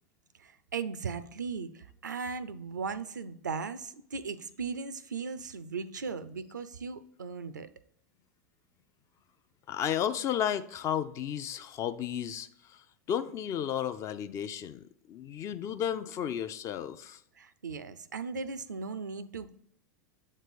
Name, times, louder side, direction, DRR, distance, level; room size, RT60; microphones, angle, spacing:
voice 1, 0.4-7.7 17.4-19.6, right 5 dB, 80° right, 0.4 m, -37 dB
voice 2, 9.7-17.2, left 9 dB, 35° left, 0.4 m, -33 dB
7.5 x 3.2 x 5.1 m
figure-of-eight pair, 90°, 10 cm